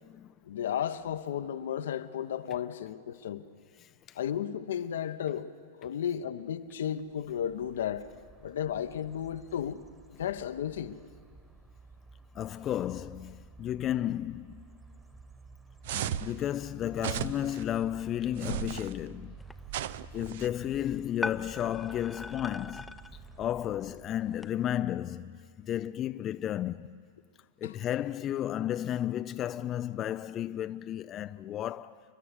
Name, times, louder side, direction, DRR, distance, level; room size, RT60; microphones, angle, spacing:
voice 1, 0.5-3.4 4.1-5.5 5.8-8.1 8.4-9.8 10.2-11.0 27.6-27.8, left 9 dB, 75° left, 0.9 m, -33 dB
voice 2, 3.8-4.2 12.3-14.8 15.9-19.3 20.1-22.9 23.4-26.9 27.6-32.0, left 11 dB, 35° left, 0.4 m, -33 dB
sound 1, 6.9-24.5, right 3 dB, 15° right, 1.6 m, -52 dB
sound 2, 15.9-16.4 17.0-17.6 18.4-18.9 19.7-20.5, right 11 dB, 65° right, 0.5 m, -35 dB
sound 3, 19.4-24.5, left 2 dB, 5° left, 0.7 m, -43 dB
29.0 x 11.0 x 8.3 m
hypercardioid pair, 110°, 0 cm